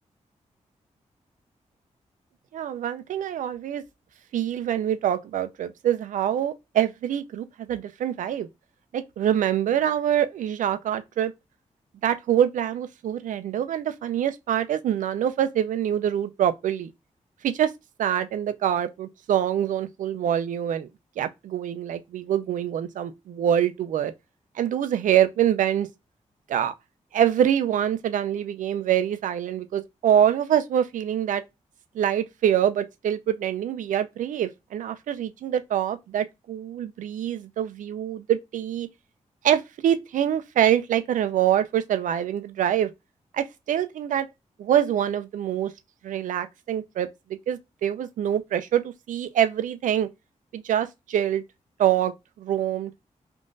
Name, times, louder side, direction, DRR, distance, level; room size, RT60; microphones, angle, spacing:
voice 1, 2.5-3.8 4.3-8.5 8.9-11.3 12.0-16.9 17.4-17.7 18.0-20.9 21.2-24.1 24.6-25.9 26.5-26.7 27.1-31.4 31.9-38.9 39.4-42.9 43.3-44.3 44.6-45.7 46.0-47.1 47.5-50.1 50.5-51.4 51.8-52.1 52.4-52.9, right 10 dB, 90° right, 0.4 m, -25 dB
3.7 x 2.5 x 2.5 m
cardioid pair, 95°, 13 cm